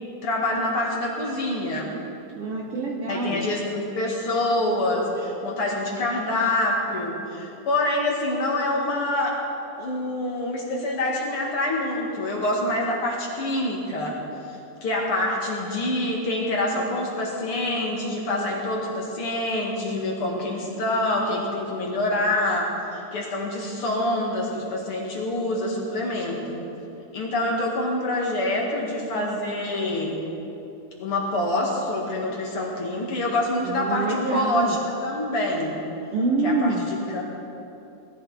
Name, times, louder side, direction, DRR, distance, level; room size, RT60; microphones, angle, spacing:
voice 1, 0.2-1.9 3.1-9.4 9.8-14.2 14.5-26.6 27.1-30.2 31.0-35.7 36.4-36.7 37.1-37.2, left 1 dB, 50° left, -2 dB, 2.5 m, -26 dB
voice 2, 2.3-3.4 33.6-34.8 36.1-36.9, right 3 dB, 65° right, 0 dB, 1.5 m, -26 dB
20.0 x 13.0 x 4.1 m, 2.9 s
omnidirectional pair, 3.6 m